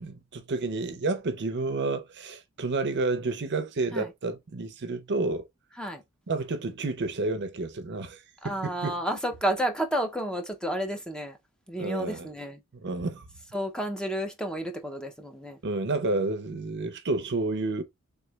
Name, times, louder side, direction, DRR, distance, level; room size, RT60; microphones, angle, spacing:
voice 1, 0.0-5.5 6.3-9.0 11.8-12.3 12.8-13.2 15.6-17.8, right 3 dB, 50° right, 0.6 m, -30 dB
voice 2, 8.4-11.4 11.7-12.6 13.5-15.6, right 1 dB, 5° left, 0.5 m, -31 dB
3.5 x 3.1 x 2.3 m
head